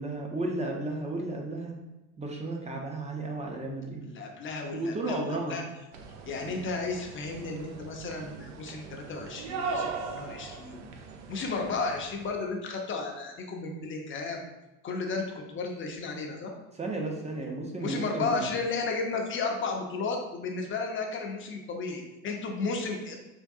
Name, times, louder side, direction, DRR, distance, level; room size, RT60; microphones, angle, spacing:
voice 1, 0.0-1.7 2.2-4.1 4.7-5.6 16.8-18.5, right 2 dB, 15° right, 0 dB, 0.5 m, -33 dB
voice 2, 4.1-5.6 6.2-10.9 11.3-14.4 14.8-16.5 17.8-23.2, left 4 dB, 25° left, 2 dB, 0.6 m, -33 dB
sound 1, 5.9-12.4, right 4 dB, 70° right, 0.6 m, -39 dB
3.6 x 2.2 x 2.7 m, 1.0 s
hypercardioid pair, 70°, 47 cm